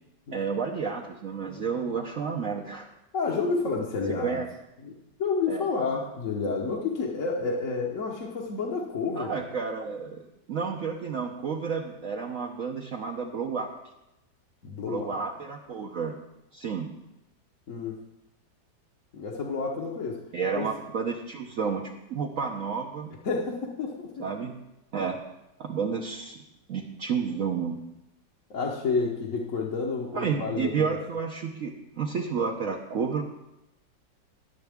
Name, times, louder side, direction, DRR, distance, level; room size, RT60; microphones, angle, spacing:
voice 1, 0.3-2.9 4.2-4.5 5.5-5.6 9.1-10.2 10.5-13.7 14.9-16.1 16.5-16.9 20.3-23.1 24.2-24.5 24.9-25.2 25.6-26.4 26.7-27.8 30.1-33.2, right 6 dB, 55° right, 0 dB, 1.1 m, -31 dB
voice 2, 3.1-4.4 4.8-4.9 5.2-9.5 14.6-15.2 17.7-18.0 19.1-20.2 20.5-20.7 23.2-24.3 28.5-31.0, left 4 dB, 50° left, -3 dB, 1.3 m, -30 dB
20.0 x 6.9 x 3.5 m, 0.91 s
omnidirectional pair, 1.9 m